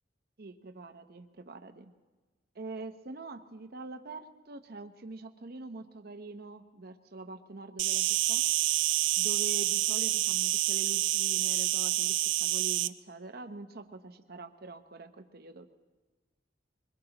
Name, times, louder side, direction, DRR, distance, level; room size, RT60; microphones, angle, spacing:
voice 1, 0.4-1.9 2.5-8.4 9.2-15.7, right 3 dB, 55° right, 7 dB, 0.8 m, -44 dB
Insect, 7.8-12.9, right 15 dB, 85° right, 0.4 m, -28 dB
23.0 x 21.5 x 2.9 m, 1.3 s
head